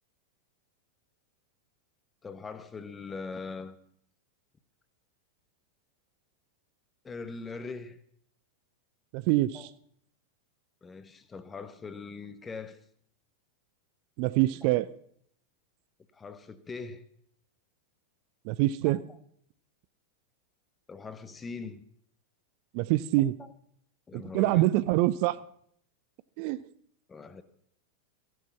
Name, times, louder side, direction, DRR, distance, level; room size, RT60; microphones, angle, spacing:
voice 1, 2.2-3.8 7.0-8.0 9.5-9.7 10.8-12.8 14.6-14.7 16.1-17.0 18.9-19.2 20.9-21.8 23.2-23.5 24.1-24.6 27.1-27.4, left 4 dB, 15° left, 1.3 m, -41 dB
voice 2, 9.1-9.7 14.2-14.9 18.5-19.0 22.7-23.3 24.1-25.4 26.4-26.6, right 17 dB, 45° right, 0.5 m, -25 dB
15.5 x 11.0 x 5.9 m
figure-of-eight pair, 90°, 0 cm